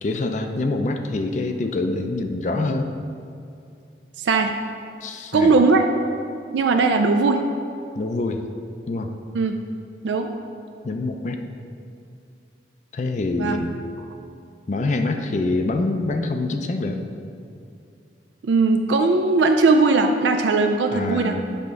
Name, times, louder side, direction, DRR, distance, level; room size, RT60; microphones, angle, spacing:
voice 1, 0.0-2.9 5.0-5.5 8.0-8.4 8.9-9.1 10.8-11.4 12.9-13.8 14.7-17.0 20.9-21.4, left 2 dB, 40° left, 6 dB, 0.4 m, -25 dB
voice 2, 4.2-4.5 5.3-5.9 6.5-7.4 9.3-9.6 10.0-10.3 13.4-13.6 18.4-21.4, right 3 dB, 85° right, 5 dB, 0.4 m, -19 dB
7.6 x 3.5 x 5.1 m, 2.5 s
head